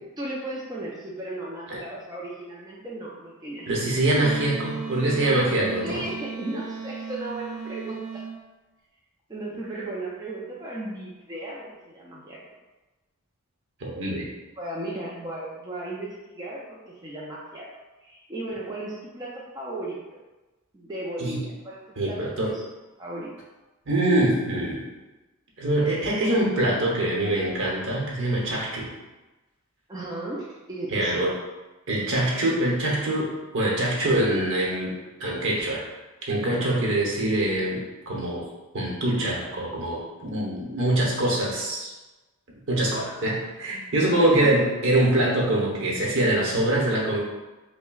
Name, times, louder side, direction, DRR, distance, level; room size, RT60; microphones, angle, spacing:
voice 1, 0.2-3.7 5.8-8.2 9.3-12.4 14.6-17.7 18.0-20.2 20.7-22.6 23.0-23.3 29.9-31.2 36.5-36.8 44.0-44.5, right 1 dB, 20° right, -5 dB, 0.4 m, -36 dB
voice 2, 3.7-6.0 13.8-14.3 21.2-21.4 22.0-22.5 23.9-24.9 25.6-28.9 30.9-31.3 31.9-34.9 35.2-35.9 36.3-38.5 38.7-41.9 42.7-47.2, right 1 dB, 60° right, -3 dB, 0.9 m, -24 dB
Wind instrument woodwind instrument, 4.2-8.4, right 6 dB, 80° right, 0.4 m, -36 dB
5.7 x 2.1 x 2.3 m, 1.1 s
head